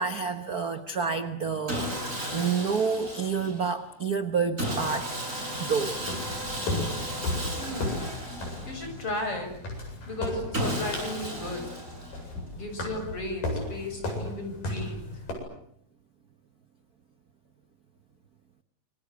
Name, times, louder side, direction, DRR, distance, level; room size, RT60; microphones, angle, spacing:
voice 1, 0.0-1.9 2.3-5.2 5.7-6.0, right 5 dB, 65° right, 9 dB, 0.9 m, -28 dB
Sawing, 1.7-3.7 4.6-9.1 10.5-12.4, equal, 20° right, 7.4 m, -34 dB
sound 1, 6.1-15.3, left 2 dB, 85° left, 9.7 m, -35 dB
voice 2, 7.5-8.1 8.7-9.5 10.1-11.7 12.5-15.0, left 1 dB, 40° left, 5 dB, 7.6 m, -35 dB
28.5 x 24.5 x 8.2 m, 0.70 s
omnidirectional pair, 3.7 m